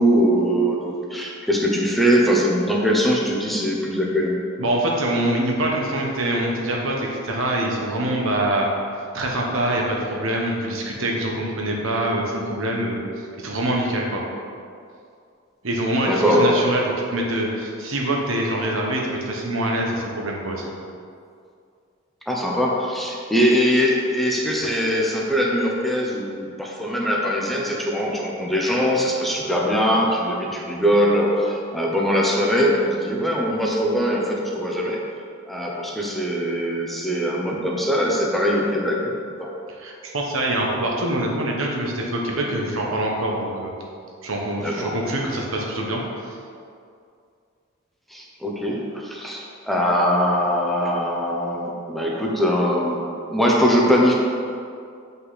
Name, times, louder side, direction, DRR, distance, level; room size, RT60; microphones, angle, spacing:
voice 1, 0.0-4.4 16.1-16.5 22.3-35.0 35.5-39.1 39.4-39.5 44.6-45.0 48.1-53.0 53.3-54.1, equal, ahead, -3 dB, 0.8 m, -21 dB
voice 2, 4.6-8.7 8.9-13.0 13.4-14.2 15.6-20.6 39.8-43.7 44.2-46.0 46.3-46.4, right 1 dB, 70° right, -1 dB, 1.2 m, -24 dB
7.8 x 5.6 x 4.2 m, 2.4 s
head